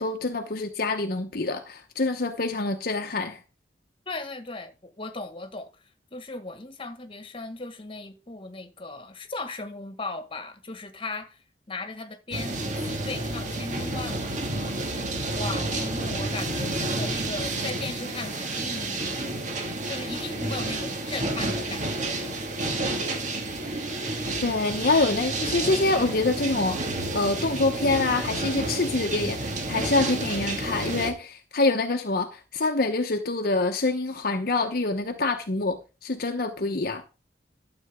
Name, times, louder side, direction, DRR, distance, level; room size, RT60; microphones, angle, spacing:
voice 1, 0.0-3.4 24.4-26.9 27.1-37.0, left 3 dB, 55° left, 1.0 m, -26 dB
voice 2, 4.0-5.7 6.1-11.4 11.7-14.8 15.3-19.5 19.8-22.4 23.0-23.2, left 3 dB, 30° left, 1.6 m, -37 dB
sound 1, 12.3-31.1, right 2 dB, 45° right, 2.1 m, -30 dB
12.5 x 7.9 x 3.7 m
head